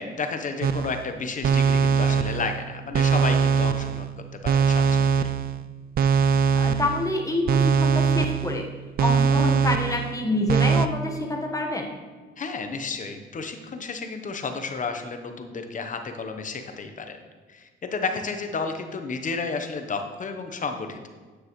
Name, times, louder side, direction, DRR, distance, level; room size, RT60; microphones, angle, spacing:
voice 1, 0.0-4.1 4.4-5.3 12.4-17.2 17.5-21.1, left 4 dB, 40° left, 6 dB, 0.9 m, -32 dB
sound 1, 0.6-1.1 1.4-2.6 2.9-4.1 4.5-5.6 6.0-7.1 7.5-8.6 9.0-10.1 10.5-10.9, right 6 dB, 50° right, 0.4 m, -21 dB
voice 2, 6.5-8.6 9.0-11.9, left 2 dB, 15° left, 1 dB, 1.2 m, -27 dB
9.4 x 6.2 x 3.1 m, 1.4 s
cardioid pair, 90°, 20 cm